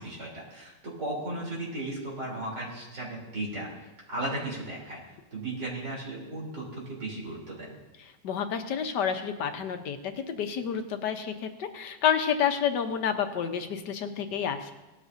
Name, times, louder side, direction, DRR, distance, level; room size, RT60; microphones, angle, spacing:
voice 1, 0.0-3.7 4.1-5.0 5.3-7.8, right 1 dB, 65° right, -4 dB, 4.0 m, -35 dB
voice 2, 8.0-14.7, left 8 dB, 70° left, 7 dB, 1.5 m, -29 dB
18.5 x 12.5 x 2.7 m, 1.1 s
omnidirectional pair, 2.0 m